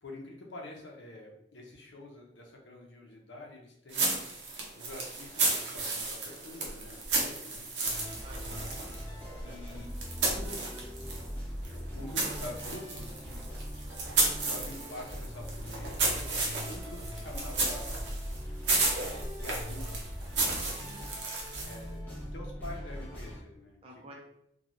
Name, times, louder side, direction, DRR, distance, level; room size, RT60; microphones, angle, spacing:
voice 1, 0.0-4.3 4.7-7.7 9.4-9.9 10.2-10.8 11.9-13.4 14.4-17.9 18.4-18.6 18.9-19.8 21.7-24.1, left 1 dB, 80° left, 0 dB, 0.7 m, -46 dB
sound 1, 3.9-11.3 11.6-21.9, right 3 dB, 70° right, 0.7 m, -33 dB
sound 2, 7.8-23.4, equal, 10° left, 0.6 m, -41 dB
voice 2, 8.2-8.9 20.3-21.1 23.8-24.1, right 1 dB, 30° right, -1 dB, 0.5 m, -50 dB
3.0 x 2.3 x 2.5 m, 0.77 s
head